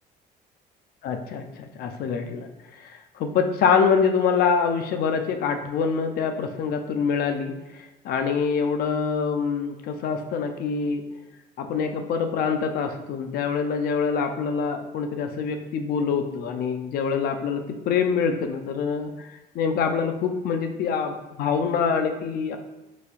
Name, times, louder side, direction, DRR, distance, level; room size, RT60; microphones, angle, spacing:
voice 1, 1.0-2.5 2.8-11.0 11.6-19.3 19.5-22.6, left 6 dB, 65° left, 6 dB, 0.4 m, -25 dB
4.0 x 2.7 x 2.3 m, 1.0 s
cardioid pair, 110°, 17 cm